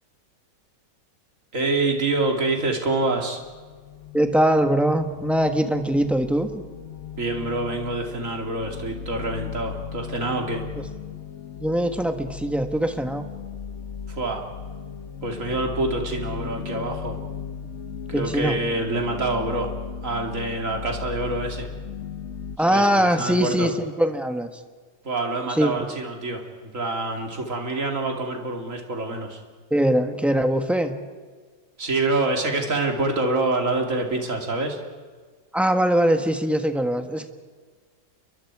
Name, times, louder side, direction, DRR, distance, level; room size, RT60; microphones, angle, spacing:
voice 1, 1.5-3.4 7.2-10.6 14.1-14.4 15.2-17.2 18.1-19.7 20.0-21.7 22.7-23.7 25.0-29.4 31.8-34.8, right 2 dB, 45° right, 2 dB, 3.0 m, -26 dB
sound 1, 3.4-22.6, left 7 dB, 55° left, 0.9 m, -36 dB
voice 2, 4.1-6.6 10.8-10.9 11.6-13.2 18.1-18.6 22.6-24.5 25.5-25.8 29.7-30.9 35.5-37.3, right 1 dB, ahead, 6 dB, 1.1 m, -22 dB
29.5 x 23.0 x 4.8 m, 1.5 s
omnidirectional pair, 1.9 m